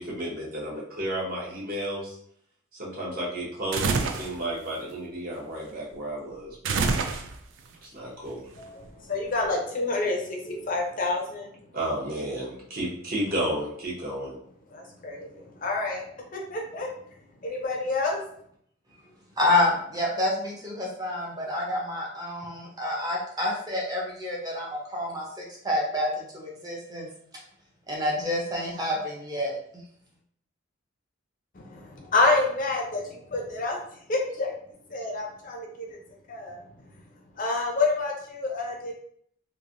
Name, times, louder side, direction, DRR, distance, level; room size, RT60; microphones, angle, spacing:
voice 1, 0.0-2.2 2.7-6.8 7.8-8.4 11.7-14.4, right 1 dB, 45° right, -4 dB, 1.0 m, -32 dB
sound 1, 3.7-4.3 6.6-7.6, right 4 dB, 65° right, 0.4 m, -26 dB
voice 2, 8.5-11.5 14.7-16.0 16.3-16.9 17.4-18.2 31.5-33.8 34.1-34.5 34.9-35.9 36.3-36.6 37.4-38.9, left 3 dB, 40° left, 0 dB, 0.6 m, -28 dB
voice 3, 19.4-27.1 27.9-29.6, left 1 dB, 20° right, -3 dB, 0.7 m, -28 dB
3.2 x 2.6 x 2.5 m, 0.66 s
head